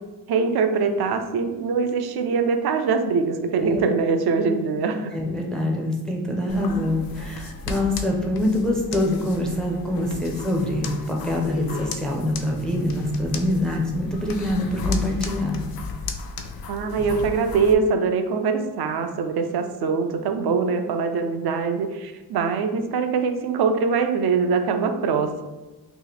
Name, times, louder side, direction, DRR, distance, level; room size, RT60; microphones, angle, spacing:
voice 1, 0.3-5.1 16.7-25.4, right 5 dB, 75° right, 6 dB, 0.5 m, -23 dB
voice 2, 5.1-15.6, left 1 dB, ahead, 0 dB, 0.4 m, -25 dB
sound 1, 6.5-17.7, left 4 dB, 65° left, 0.5 m, -34 dB
3.0 x 2.9 x 4.0 m, 1.1 s
wide cardioid pair, 170°, 38 cm